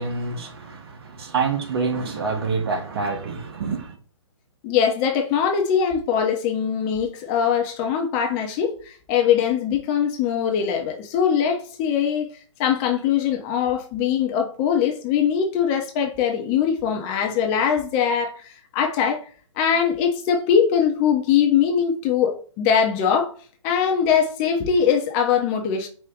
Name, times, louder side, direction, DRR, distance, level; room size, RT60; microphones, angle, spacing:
voice 1, 0.0-4.0, right 4 dB, 50° right, 1.1 m, -27 dB
voice 2, 4.6-12.3 12.6-19.2 19.6-23.3 23.6-25.9, left 7 dB, 25° left, 0.6 m, -22 dB
4.9 x 2.1 x 3.5 m
figure-of-eight pair, 130°, 17 cm